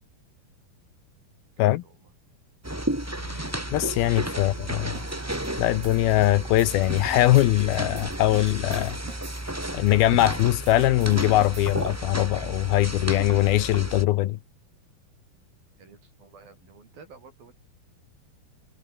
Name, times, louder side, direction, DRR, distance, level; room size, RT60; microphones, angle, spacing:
voice 1, 1.6-2.1 4.0-4.7 15.8-17.5, right 5 dB, 60° right, 7.5 m, -52 dB
sound 1, 2.6-14.0, right 1 dB, 10° right, 0.8 m, -33 dB
sound 2, 3.2-8.4, right 4 dB, 40° right, 6.6 m, -45 dB
voice 2, 3.3-4.9 5.6-9.0 9.7-14.4, left 15 dB, 75° left, 2.6 m, -22 dB
sound 3, 5.0-12.1, right 7 dB, 80° right, 5.9 m, -48 dB
omnidirectional pair, 4.7 m